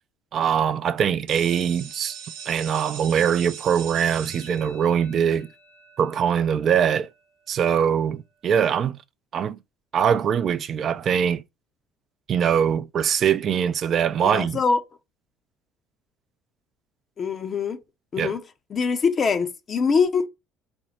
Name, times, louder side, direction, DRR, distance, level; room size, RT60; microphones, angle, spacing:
voice 1, 0.3-2.2 2.5-5.5 6.0-7.1 7.5-9.0 9.3-9.6 9.9-11.4 12.3-14.6 18.2-18.3, right 8 dB, 50° right, 0.3 m, -22 dB
sound 1, 1.3-6.9, right 7 dB, 75° right, 0.8 m, -41 dB
voice 2, 14.2-14.8 17.2-17.8 18.1-18.4 18.7-20.3, left 5 dB, 40° left, 0.5 m, -23 dB
4.2 x 2.0 x 4.2 m
hypercardioid pair, 65°, 0 cm